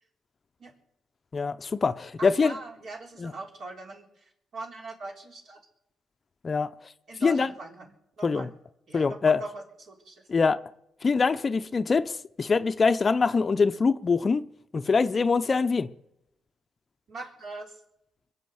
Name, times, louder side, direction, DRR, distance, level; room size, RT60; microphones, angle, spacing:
voice 1, 1.3-2.5 3.2-3.3 6.4-6.7 7.2-7.5 8.2-8.5 8.9-9.4 10.3-10.6 11.0-14.5 14.7-15.9, left 4 dB, 35° left, 0.7 m, -24 dB
voice 2, 2.2-5.6 7.1-8.5 8.9-10.2 17.1-17.8, right 3 dB, 60° right, 3.8 m, -41 dB
22.5 x 8.0 x 7.8 m
cardioid pair, 90°, 0 cm